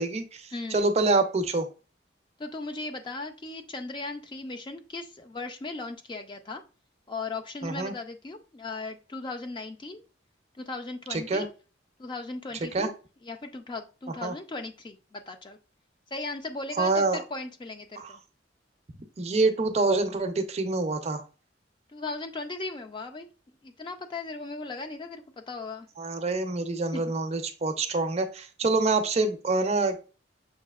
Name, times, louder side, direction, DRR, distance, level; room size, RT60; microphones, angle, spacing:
voice 1, 0.0-1.7 7.6-7.9 11.1-11.5 12.7-12.9 14.2-14.3 16.8-17.2 18.0-18.1 19.2-21.2 26.0-30.1, right 3 dB, 35° right, 7 dB, 0.5 m, -26 dB
voice 2, 0.5-0.9 2.4-6.6 7.1-10.0 10.6-11.5 12.0-12.9 13.2-15.6 16.1-18.2 21.9-23.3 23.6-25.9 26.9-27.1, left 3 dB, 25° left, 5 dB, 0.4 m, -37 dB
6.4 x 2.7 x 2.3 m, 0.35 s
head